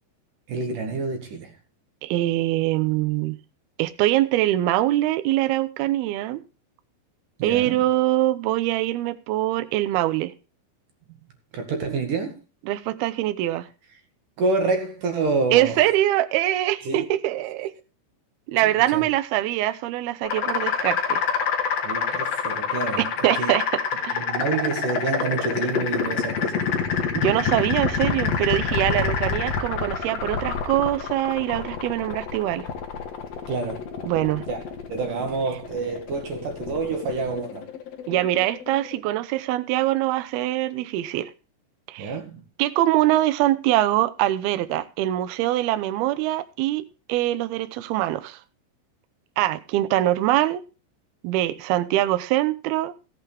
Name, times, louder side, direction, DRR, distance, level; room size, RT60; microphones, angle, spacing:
voice 1, 0.5-1.5 7.4-7.8 11.5-12.4 14.4-15.8 16.8-17.1 18.7-19.1 21.8-23.1 23.4-23.5 24.1-26.6 33.5-33.9 34.5-34.6 34.9-37.7 42.0-42.4, right 4 dB, 55° right, 3.0 m, -28 dB
voice 2, 2.0-3.4 3.8-6.4 7.4-10.3 12.7-13.7 15.5-17.7 18.5-21.2 23.0-23.6 24.0-24.2 27.1-32.7 34.0-34.4 38.1-41.3 41.9-42.2 42.6-48.4 49.4-50.6 51.2-52.9, right 15 dB, 75° right, 2.5 m, -23 dB
sound 1, 20.2-39.0, left 6 dB, 60° left, 1.7 m, -27 dB
17.0 x 8.5 x 3.5 m
omnidirectional pair, 5.2 m